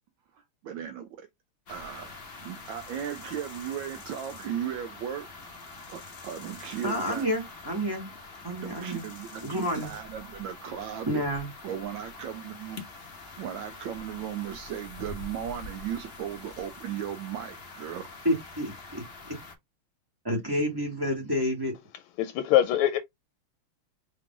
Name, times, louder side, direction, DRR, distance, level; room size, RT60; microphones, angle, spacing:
voice 1, 0.3-1.3 1.7-5.3 5.9-7.3 8.6-11.2 11.6-12.8 13.4-18.1, right 9 dB, 75° right, 1.2 m, -36 dB
sound 1, 1.7-19.5, left 3 dB, 50° left, 0.7 m, -45 dB
voice 2, 6.8-8.1 8.4-9.0 9.4-9.9 11.1-11.5 18.2-19.0 20.2-21.7, equal, 15° right, 0.8 m, -29 dB
voice 3, 22.2-23.0, left 12 dB, 85° left, 1.4 m, -23 dB
4.7 x 2.4 x 3.7 m
omnidirectional pair, 2.3 m